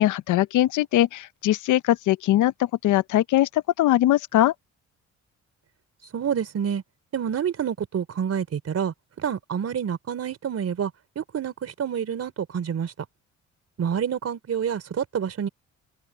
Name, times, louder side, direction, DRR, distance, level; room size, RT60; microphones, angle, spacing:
voice 1, 0.0-4.5, left 14 dB, 80° left, 0.8 m, -21 dB
voice 2, 6.1-6.8 7.1-12.9 13.8-15.5, right 8 dB, 55° right, 4.1 m, -28 dB
cardioid pair, 90°, 30 cm